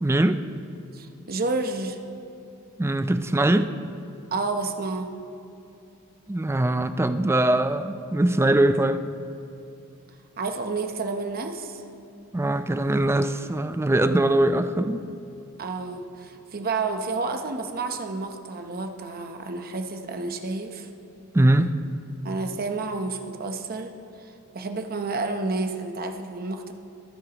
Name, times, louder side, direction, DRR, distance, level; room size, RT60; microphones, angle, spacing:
voice 1, 0.0-0.4 2.8-3.7 6.3-9.0 12.3-15.1 21.3-21.8, right 1 dB, 10° right, 10 dB, 0.4 m, -22 dB
voice 2, 0.9-2.0 4.3-5.1 10.4-11.8 15.6-20.9 22.2-23.9 24.2-26.7, right 3 dB, 45° right, 6 dB, 0.8 m, -30 dB
24.0 x 8.1 x 3.0 m, 2.8 s
head